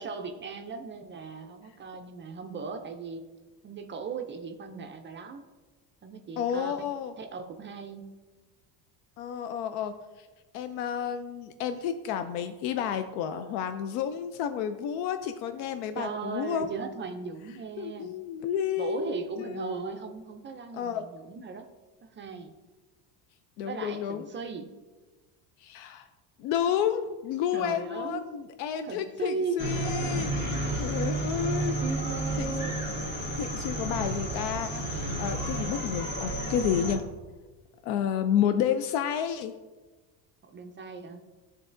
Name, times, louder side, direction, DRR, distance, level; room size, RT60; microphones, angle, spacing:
voice 1, 0.0-3.2 3.6-5.5 6.0-6.7 7.2-8.1 16.0-18.1 18.8-21.7 22.0-22.5 23.6-24.7 27.5-28.3 28.8-29.6 30.6-30.9 31.8-33.0 40.4-41.2, right 5 dB, 30° right, 4 dB, 0.4 m, -37 dB
voice 2, 6.4-7.1 9.2-9.9 10.2-10.3 10.5-16.7 17.8-19.9 20.7-21.0 23.6-24.3 25.6-26.1 26.4-30.3 30.8-31.8 32.4-32.5 33.4-37.0 37.8-39.5, left 9 dB, 85° left, 9 dB, 0.5 m, -30 dB
sound 1, 29.6-37.0, right 1 dB, 25° left, 1.4 m, -31 dB
11.5 x 3.9 x 2.5 m, 1.3 s
cardioid pair, 125°, 42 cm